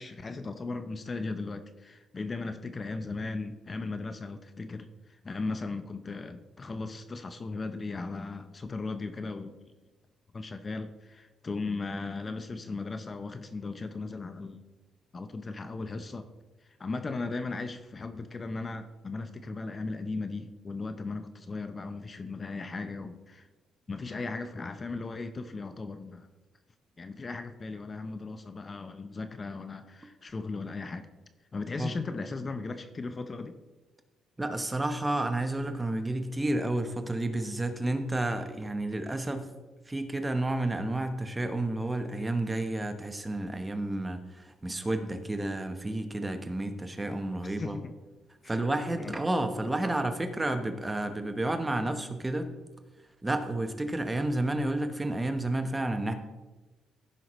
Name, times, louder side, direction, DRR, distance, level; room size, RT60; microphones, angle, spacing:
voice 1, 0.0-9.6 10.3-14.6 15.1-16.3 16.6-23.5 23.9-26.3 27.0-31.1 31.5-33.6 47.6-47.9 48.4-48.6 49.0-49.1, left 3 dB, 30° left, 10 dB, 0.7 m, -37 dB
voice 2, 34.4-39.5 39.9-47.8 48.5-52.5 53.2-56.1, right 1 dB, 15° right, 7 dB, 1.0 m, -31 dB
15.5 x 5.7 x 3.1 m, 1.2 s
cardioid pair, 90°, 0 cm